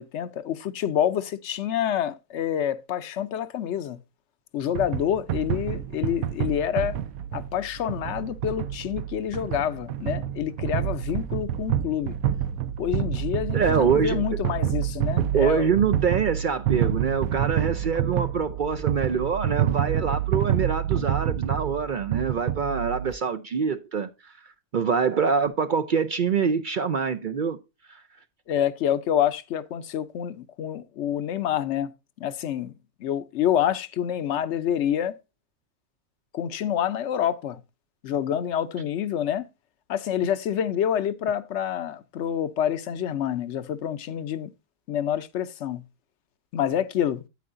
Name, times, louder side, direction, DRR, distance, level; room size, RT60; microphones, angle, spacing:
voice 1, 0.0-4.0 4.5-7.0 7.3-12.1 12.8-15.7 28.5-31.9 32.2-32.7 33.0-35.1 36.3-37.6 38.0-39.5 39.9-44.5 44.9-45.8 46.5-47.2, left 10 dB, 65° left, 0.9 m, -27 dB
sound 1, 4.8-23.1, right 10 dB, 90° right, 1.1 m, -28 dB
voice 2, 13.5-14.3 15.3-24.3 24.7-27.6 27.9-28.0, right 6 dB, 60° right, 0.5 m, -25 dB
9.3 x 8.8 x 2.5 m
omnidirectional pair, 1.4 m